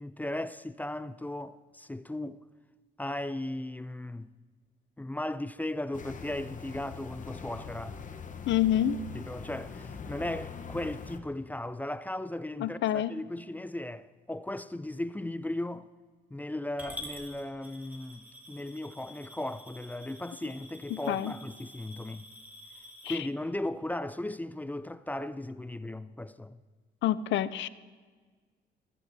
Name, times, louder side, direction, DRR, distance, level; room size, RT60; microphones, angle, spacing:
voice 1, 0.0-2.4 3.0-4.3 5.0-8.0 9.1-15.9 16.3-22.3 23.1-26.6, left 1 dB, 10° left, 0.3 m, -36 dB
sound 1, 5.9-11.2, left 6 dB, 40° left, 1.0 m, -43 dB
voice 2, 8.5-9.0 12.6-13.1 20.9-21.3 23.0-23.2 27.0-27.7, left 11 dB, 70° left, 0.5 m, -27 dB
Coin (dropping) / Glass, 16.8-23.1, equal, 10° right, 2.0 m, -48 dB
15.5 x 13.5 x 2.7 m
cardioid pair, 90°, 20 cm